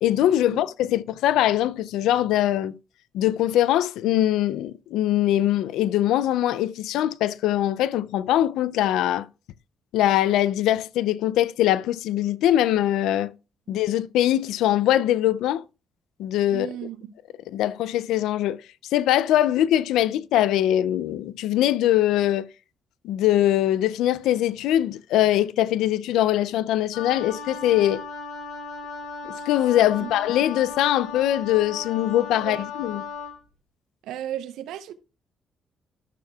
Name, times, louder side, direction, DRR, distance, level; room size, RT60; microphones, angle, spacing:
voice 1, 0.0-2.7 3.1-9.3 9.9-13.3 13.7-15.6 16.2-16.7 17.5-18.6 18.9-22.5 23.0-28.0 29.2-33.0, left 12 dB, 90° left, 0.4 m, -22 dB
voice 2, 16.5-17.1 30.0-30.1 32.4-32.6 34.0-34.9, right 11 dB, 90° right, 0.7 m, -35 dB
Wind instrument woodwind instrument, 26.9-33.4, left 5 dB, 70° left, 3.6 m, -36 dB
13.0 x 6.6 x 2.3 m
cardioid pair, 90°, 0 cm